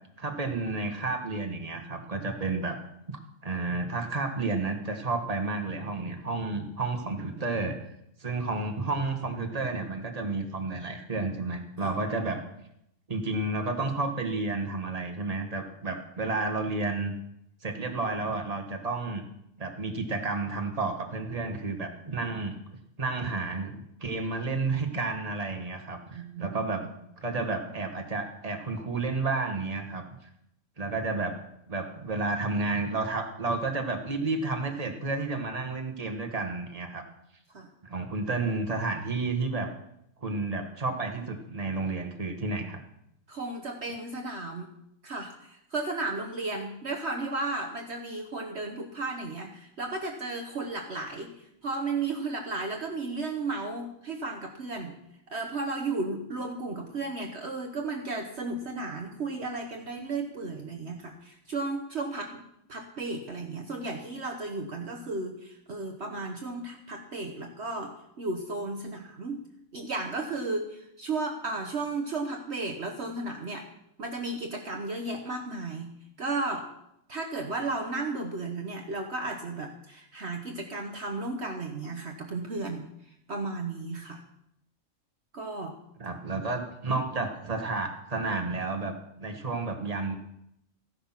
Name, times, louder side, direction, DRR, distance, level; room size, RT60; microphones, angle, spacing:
voice 1, 0.2-2.8 3.1-7.8 8.2-12.4 13.1-17.1 17.6-19.2 19.6-22.6 23.0-26.8 27.2-30.0 30.8-31.3 31.7-37.0 37.8-39.7 40.2-42.8 86.0-90.1, right 3 dB, 30° right, 4 dB, 1.7 m, -31 dB
voice 2, 26.1-26.9 37.5-37.7 43.3-44.7 45.0-51.3 51.6-55.0 55.3-69.4 69.7-73.7 74.0-75.9 76.2-76.7 77.1-82.9 83.3-84.2 85.3-85.7, right 3 dB, 55° right, 3 dB, 1.4 m, -34 dB
15.0 x 10.5 x 5.9 m, 0.80 s
omnidirectional pair, 1.4 m